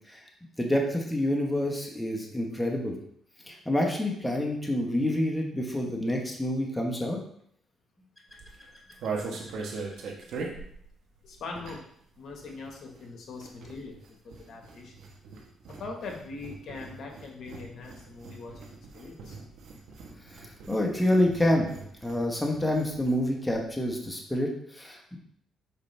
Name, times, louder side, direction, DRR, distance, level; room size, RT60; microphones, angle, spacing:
voice 1, 0.6-2.9 3.5-7.2 20.3-21.7 22.0-25.2, left 1 dB, 5° left, 0 dB, 1.3 m, -27 dB
sound 1, 8.3-12.0 12.3-23.2 23.5-23.6 23.8-24.1, right 4 dB, 75° right, 1.4 m, -41 dB
voice 2, 11.2-11.8 12.2-14.9 15.8-19.4, left 4 dB, 65° left, 1 dB, 1.5 m, -42 dB
7.0 x 4.9 x 3.4 m, 0.68 s
cardioid pair, 90°, 0 cm